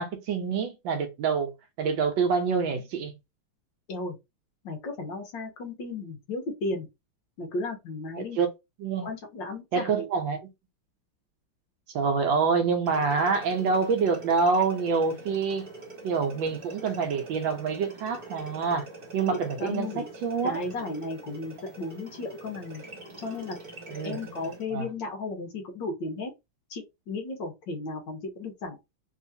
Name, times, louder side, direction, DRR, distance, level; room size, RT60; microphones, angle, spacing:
voice 1, 0.0-1.5 1.8-3.2 8.2-8.5 8.8-9.1 9.7-10.4 11.9-15.7 16.0-18.9 19.1-20.5 23.9-24.2 24.7-24.9, right 5 dB, 70° right, 1.3 m, -26 dB
voice 2, 4.6-6.9 7.4-8.4 9.0-10.0 19.3-20.0 20.4-22.8 23.2-23.6 24.0-26.3 26.7-28.8, left 2 dB, 65° left, 1.6 m, -34 dB
sound 1, 12.8-24.7, right 2 dB, 30° right, 1.3 m, -45 dB
3.7 x 2.9 x 2.6 m
omnidirectional pair, 2.3 m